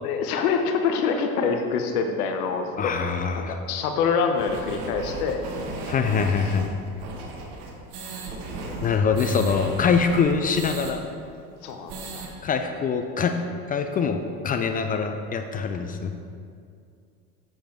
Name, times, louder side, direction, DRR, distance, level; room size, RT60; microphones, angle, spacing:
voice 1, 0.0-2.9 3.3-5.4 11.6-12.2, left 5 dB, 70° left, 5 dB, 1.0 m, -25 dB
voice 2, 2.8-3.5 5.9-6.7 8.8-11.0 12.4-13.4 13.7-16.1, left 5 dB, 20° left, 6 dB, 0.3 m, -24 dB
sound 1, 4.4-10.9 11.3-11.4 11.7-12.3, right 3 dB, 55° right, 1.6 m, -35 dB
7.7 x 7.0 x 4.6 m, 2.3 s
hypercardioid pair, 85°, 46 cm